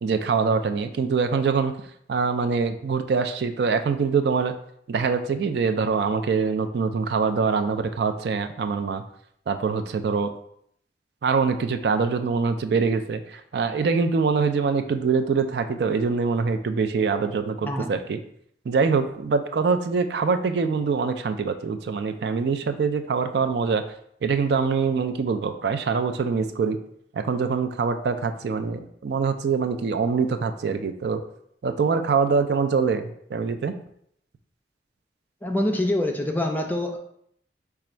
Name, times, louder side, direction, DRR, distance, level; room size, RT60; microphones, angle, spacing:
voice 1, 0.0-1.7 2.1-4.5 4.9-9.0 9.5-10.3 11.2-18.2 18.7-23.8 24.2-26.8 27.1-31.2 31.6-33.7, right 5 dB, 65° right, 8 dB, 0.4 m, -24 dB
voice 2, 35.4-37.0, left 1 dB, 10° left, 2 dB, 0.5 m, -25 dB
5.0 x 2.3 x 4.3 m, 0.69 s
head